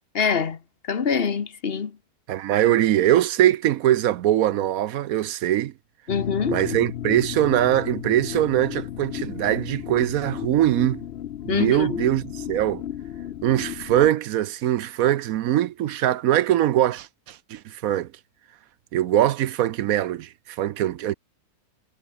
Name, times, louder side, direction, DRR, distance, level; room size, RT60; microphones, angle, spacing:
voice 1, 0.1-0.6 0.9-2.0 6.1-6.6 11.5-12.0, left 6 dB, 40° left, 1.3 m, -24 dB
voice 2, 2.3-5.7 6.5-11.0 11.5-12.8 13.4-18.1 18.9-21.1, right 12 dB, 75° right, 1.0 m, -22 dB
sound 1, 6.1-14.1, left 11 dB, 60° left, 0.7 m, -34 dB
omnidirectional pair, 1.6 m